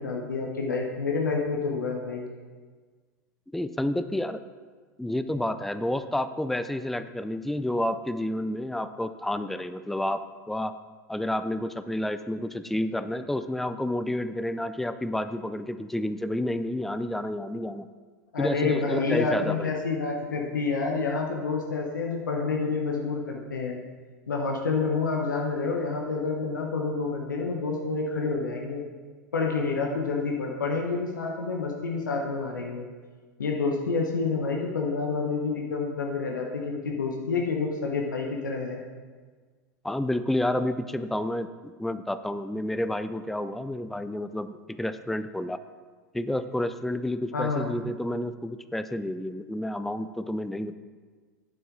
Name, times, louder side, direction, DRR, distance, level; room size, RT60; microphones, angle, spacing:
voice 1, 0.0-2.2 18.3-23.8 24.3-28.8 29.3-32.9 33.4-38.8 47.3-47.7, left 4 dB, 85° left, 0 dB, 0.9 m, -28 dB
voice 2, 3.5-4.4 5.0-10.2 10.5-10.7 11.1-17.9 18.4-19.7 39.8-45.6 46.1-50.7, left 1 dB, ahead, 11 dB, 0.3 m, -30 dB
9.2 x 7.3 x 3.8 m, 1.5 s
hypercardioid pair, 95°, 10 cm